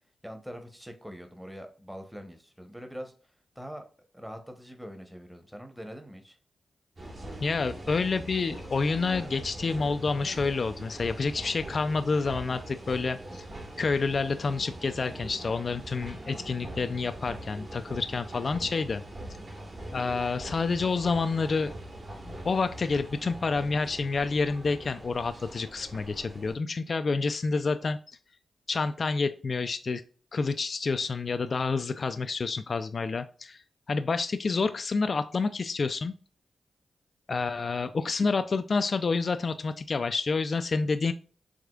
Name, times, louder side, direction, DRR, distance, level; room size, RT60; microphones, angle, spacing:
voice 1, 0.2-3.1 3.6-3.8 4.1-6.4, equal, 5° right, 6 dB, 0.9 m, -43 dB
sound 1, 7.0-26.6, right 1 dB, 55° right, 1.5 m, -42 dB
voice 2, 7.4-13.5 13.8-19.0 19.9-21.7 22.3-28.0 28.7-30.0 30.3-33.6 33.9-36.1 37.3-41.1, left 4 dB, 55° left, 9 dB, 0.3 m, -28 dB
4.9 x 3.5 x 2.3 m, 0.39 s
supercardioid pair, 40°, 0 cm